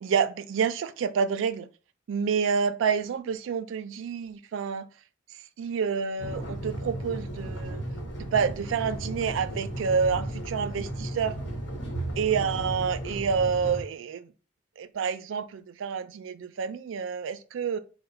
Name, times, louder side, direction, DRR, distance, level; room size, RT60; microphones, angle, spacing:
voice 1, 0.0-1.7 2.1-4.9 5.6-7.8 8.2-11.4 12.2-14.2 14.8-17.8, right 6 dB, 85° right, 0.3 m, -28 dB
sound 1, 6.2-13.8, right 1 dB, 70° left, 1.1 m, -35 dB
3.9 x 2.1 x 4.4 m
head